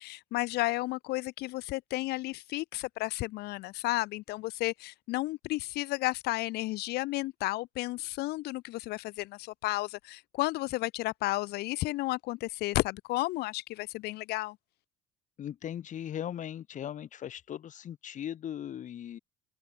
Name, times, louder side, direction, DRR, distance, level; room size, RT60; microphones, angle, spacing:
voice 1, 0.0-14.6, left 19 dB, 70° left, 1.3 m, -32 dB
voice 2, 15.4-19.2, left 10 dB, 50° left, 1.4 m, -38 dB
open air
supercardioid pair, 85°, 17 cm